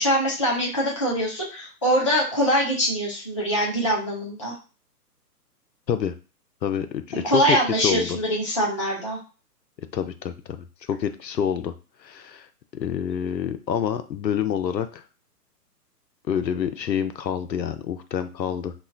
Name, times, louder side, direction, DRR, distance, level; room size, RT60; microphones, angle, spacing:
voice 1, 0.0-4.5 7.1-9.2, equal, 20° left, -4 dB, 0.4 m, -23 dB
voice 2, 6.6-8.2 9.9-11.7 12.0-12.5 12.8-15.0 16.3-18.7, left 8 dB, 90° left, 9 dB, 0.6 m, -27 dB
3.0 x 2.1 x 3.6 m, 0.33 s
figure-of-eight pair, 135°, 49 cm